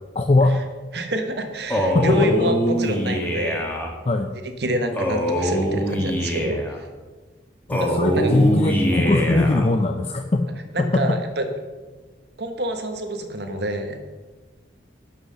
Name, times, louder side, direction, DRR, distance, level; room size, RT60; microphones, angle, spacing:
voice 1, 0.2-0.6 1.9-2.2 4.1-4.3 7.7-10.5 10.8-11.2, left 2 dB, 35° left, 5 dB, 0.5 m, -20 dB
voice 2, 0.9-3.7 4.6-6.9 7.8-8.3 10.7-11.4 12.4-14.0, equal, 60° right, 5 dB, 1.3 m, -27 dB
Male speech man speaking, 1.7-3.9 4.9-6.8 7.7-9.7, equal, 10° left, 1.4 m, -23 dB
11.5 x 5.7 x 6.6 m, 1.3 s
head